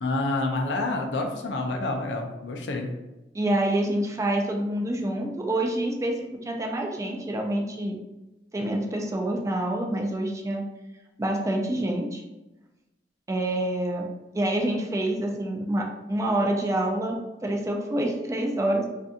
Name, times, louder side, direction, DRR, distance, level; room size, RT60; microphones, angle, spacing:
voice 1, 0.0-2.9, left 2 dB, 85° left, 3 dB, 0.5 m, -28 dB
voice 2, 3.3-8.0 8.5-10.6 11.2-12.2 13.3-14.1 14.3-18.8, right 1 dB, 20° right, 1 dB, 0.3 m, -27 dB
2.6 x 2.5 x 2.4 m, 1.0 s
head